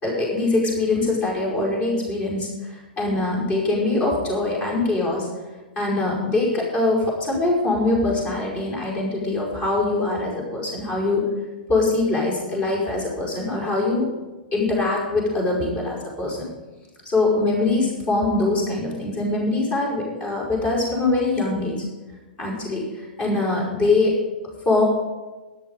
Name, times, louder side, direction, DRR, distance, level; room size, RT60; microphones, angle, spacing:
voice 1, 0.0-5.3 5.8-11.3 11.7-14.1 14.5-16.5 17.1-21.8 22.4-24.2 24.7-24.8, left 2 dB, 30° left, -3 dB, 5.2 m, -23 dB
13.5 x 11.0 x 5.4 m, 1.2 s
figure-of-eight pair, 105°, 5 cm